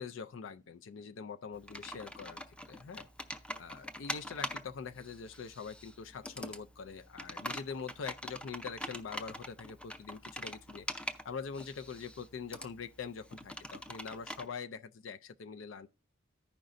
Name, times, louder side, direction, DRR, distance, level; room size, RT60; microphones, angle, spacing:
voice 1, 0.0-3.1 3.5-15.9, left 5 dB, 75° left, 0.4 m, -44 dB
Computer keyboard, 1.5-14.5, equal, 5° left, 0.5 m, -44 dB
15.0 x 5.2 x 2.5 m
head